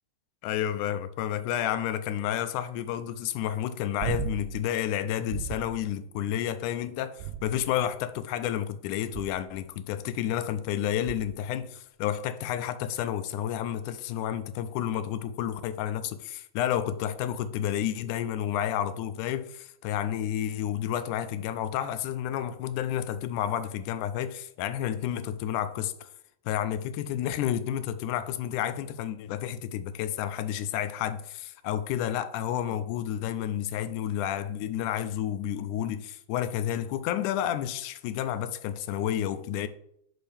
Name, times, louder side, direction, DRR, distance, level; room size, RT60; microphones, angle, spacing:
voice 1, 0.4-26.1 26.5-39.7, left 10 dB, 85° left, 2.0 m, -30 dB
sound 1, 4.0-4.6 5.3-5.8 7.2-7.9 9.1-9.6 11.0-11.5 13.9-14.0, right 9 dB, 80° right, 2.0 m, -36 dB
8.7 x 6.3 x 3.4 m
omnidirectional pair, 3.5 m